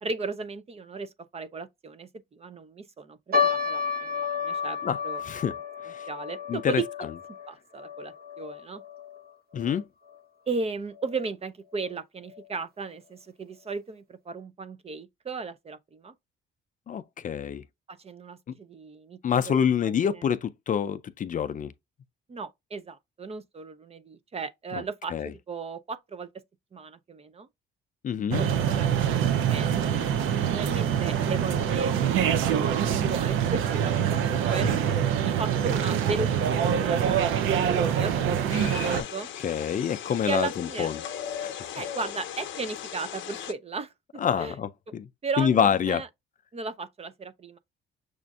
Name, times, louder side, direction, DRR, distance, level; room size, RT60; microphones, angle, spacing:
voice 1, 0.0-4.8 5.0-5.2 6.1-6.9 7.5-8.8 10.5-16.1 17.9-19.2 19.5-19.6 19.8-20.2 22.3-25.1 25.5-26.3 26.7-27.5 28.4-34.7 35.2-38.1 38.8-39.3 40.2-40.9 41.7-43.9 44.4-44.6 45.2-46.1 46.5-47.6, right 4 dB, 30° right, 0.5 m, -36 dB
sound 1, 3.3-9.8 10.1-10.2 10.9-11.2 11.8-11.9 12.3-12.4, left 6 dB, 50° right, 1.0 m, -32 dB
voice 2, 6.5-6.8 9.5-9.8 16.9-17.6 19.2-21.7 24.7-24.8 25.1-25.3 28.0-28.4 34.5-34.6 38.9-39.1 39.4-40.9 41.4-41.5 44.2-45.1 45.4-46.0, left 8 dB, 40° left, 0.4 m, -26 dB
sound 2, 28.3-39.0, right 8 dB, 85° right, 0.5 m, -25 dB
sound 3, 38.5-43.5, left 9 dB, 75° left, 0.7 m, -37 dB
6.1 x 2.5 x 2.3 m
cardioid pair, 90°, 20 cm